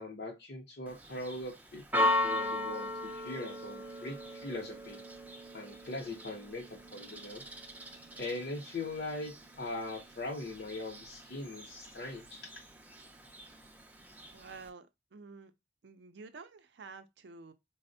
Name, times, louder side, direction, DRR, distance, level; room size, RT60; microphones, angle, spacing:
voice 1, 0.0-5.0 5.5-7.4 8.2-12.4, left 2 dB, 60° left, 0.7 m, -41 dB
Church bell, 0.9-14.7, left 1 dB, 10° right, 0.3 m, -38 dB
voice 2, 14.3-15.5 15.8-17.5, right 4 dB, 75° right, 0.4 m, -50 dB
4.1 x 2.0 x 2.6 m
head